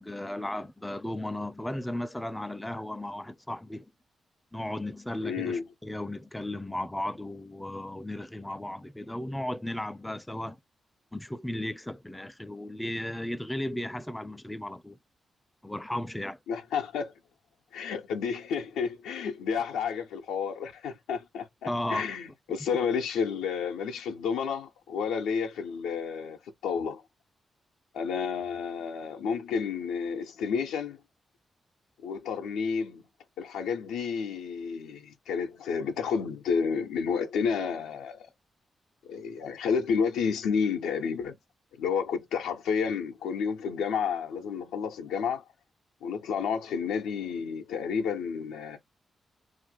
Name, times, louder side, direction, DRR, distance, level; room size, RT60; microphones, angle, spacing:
voice 1, 0.0-3.9 4.5-10.6 11.1-15.0 15.6-16.4 21.7-22.1, left 1 dB, 15° left, 0.4 m, -35 dB
voice 2, 5.2-5.6 16.5-17.1 17.7-27.0 27.9-31.0 32.0-33.0 33.4-38.3 39.0-41.4 41.7-45.4 46.0-48.8, left 6 dB, 90° left, 0.4 m, -31 dB
2.4 x 2.1 x 3.9 m
supercardioid pair, 40°, 0 cm